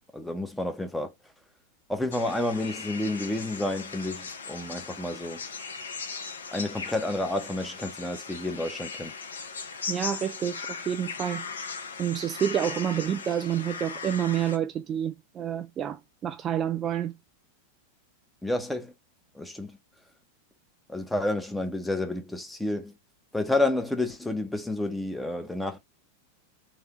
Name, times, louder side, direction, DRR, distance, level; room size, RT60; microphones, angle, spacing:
voice 1, 0.1-1.1 1.9-5.4 6.5-9.1 18.4-18.9 19.3-19.8 20.9-22.9 23.3-25.8, left 2 dB, 5° left, 0.8 m, -30 dB
sound 1, 2.1-14.6, left 5 dB, 70° left, 0.6 m, -38 dB
voice 2, 9.9-11.4 12.0-17.1, right 9 dB, 25° right, 0.3 m, -29 dB
3.3 x 2.8 x 4.0 m
figure-of-eight pair, 90°, 0 cm